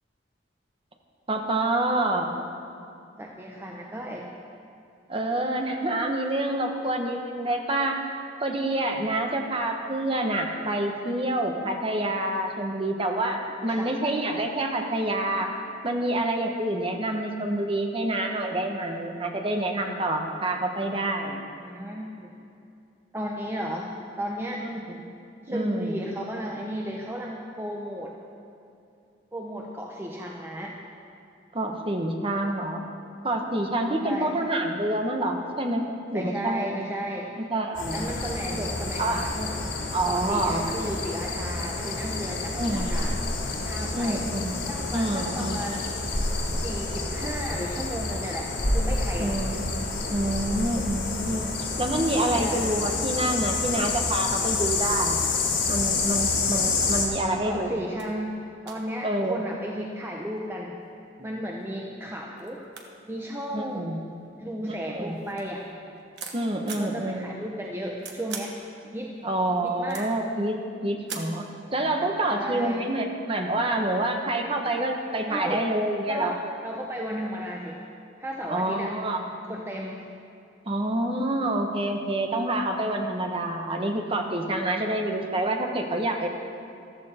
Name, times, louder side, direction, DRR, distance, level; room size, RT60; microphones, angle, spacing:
voice 1, 1.3-2.3 5.1-8.0 8.4-15.5 15.8-21.4 24.6-25.0 25.5-26.0 31.5-32.8 33.2-35.9 36.1-36.7 37.4-38.1 39.0-39.3 39.9-40.7 42.5-42.9 43.9-44.5 44.9-45.6 49.2-49.8 50.1-55.2 55.7-57.8 59.0-59.4 63.5-64.0 64.7-65.2 66.3-67.3 69.2-76.4 78.5-79.2 80.6-86.3, right 1 dB, 30° right, 3 dB, 1.2 m, -27 dB
voice 2, 3.2-4.3 13.7-14.0 21.6-22.3 23.1-23.9 24.2-24.6 25.4-28.2 29.3-30.8 34.0-34.3 36.1-37.4 37.9-39.6 40.1-43.2 43.6-44.2 44.7-45.9 46.5-49.3 52.1-52.7 57.4-60.8 61.2-62.6 63.1-64.0 64.4-65.7 66.6-68.6 68.9-69.2 69.6-70.1 72.3-72.9 75.3-75.6 76.1-76.3 76.6-77.8 78.2-79.0 79.4-80.0, equal, 15° right, -1 dB, 0.8 m, -34 dB
sound 1, 37.7-57.0, left 3 dB, 85° left, 3.3 m, -28 dB
sound 2, 57.7-57.8 58.0-58.1 58.7-59.5 60.2-60.9 61.6-61.7 62.0-62.1 62.4-64.4 64.9-66.9 67.6-68.6 69.0-70.3 71.1-71.5, right 5 dB, 65° right, 1.4 m, -42 dB
14.5 x 13.5 x 4.4 m, 2.6 s
head